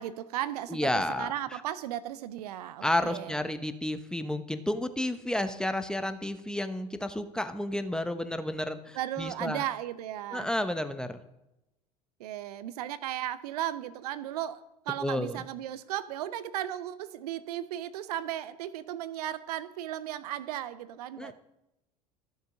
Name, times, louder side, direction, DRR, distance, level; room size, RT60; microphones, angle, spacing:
voice 1, 0.0-0.8 1.2-3.4 8.9-10.5 12.2-21.3, right 12 dB, 70° right, 16 dB, 0.6 m, -35 dB
voice 2, 0.7-1.6 2.8-9.6 10.3-11.2 15.0-15.4 21.2-21.3, left 1 dB, 5° left, 9 dB, 1.1 m, -31 dB
14.0 x 8.0 x 5.2 m, 0.91 s
hypercardioid pair, 75°, 21 cm